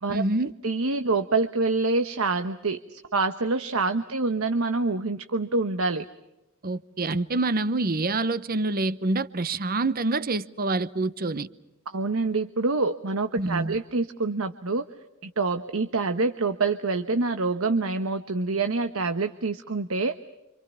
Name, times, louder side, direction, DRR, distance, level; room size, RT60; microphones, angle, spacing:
voice 1, 0.1-0.5 6.6-11.5 13.4-13.8, right 2 dB, 45° right, 0.9 m, -26 dB
voice 2, 0.6-6.1 11.9-14.9 15.2-20.1, right 3 dB, 75° right, 1.1 m, -26 dB
30.0 x 26.5 x 5.8 m
head